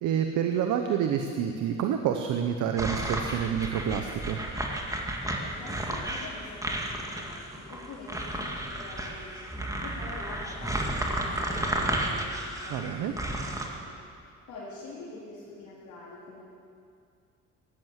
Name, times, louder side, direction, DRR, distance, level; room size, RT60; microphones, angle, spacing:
voice 1, 0.0-4.4 12.7-13.1, right 8 dB, 90° right, 5 dB, 0.9 m, -28 dB
sound 1, 2.8-13.7, right 1 dB, 10° right, 2.0 m, -32 dB
voice 2, 5.4-16.4, left 3 dB, 75° left, -10 dB, 3.8 m, -45 dB
15.0 x 11.0 x 7.5 m, 2.4 s
cardioid pair, 90°, 30 cm